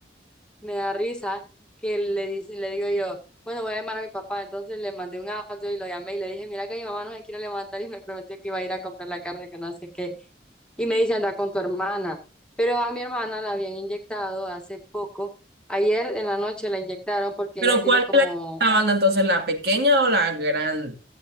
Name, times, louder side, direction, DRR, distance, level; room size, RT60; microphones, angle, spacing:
voice 1, 0.6-1.5 1.8-3.2 3.5-10.2 10.8-12.2 12.6-15.3 15.7-18.6, equal, 5° left, 3 dB, 1.8 m, -29 dB
voice 2, 17.6-18.2 18.6-20.9, equal, 60° right, 4 dB, 2.2 m, -20 dB
16.5 x 8.4 x 2.7 m, 0.31 s
head